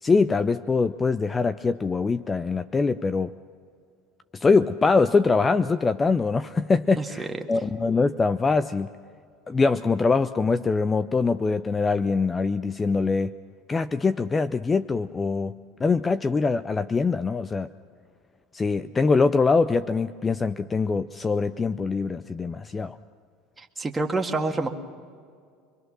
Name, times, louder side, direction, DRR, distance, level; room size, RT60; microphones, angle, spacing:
voice 1, 0.0-3.3 4.3-8.9 9.5-13.3 13.7-15.5 15.8-17.7 18.5-23.0, left 4 dB, 20° left, 13 dB, 0.5 m, -23 dB
voice 2, 7.0-7.4 23.6-24.7, right 3 dB, 15° right, 3 dB, 1.8 m, -28 dB
25.0 x 23.0 x 6.2 m, 2.2 s
supercardioid pair, 105°, 0 cm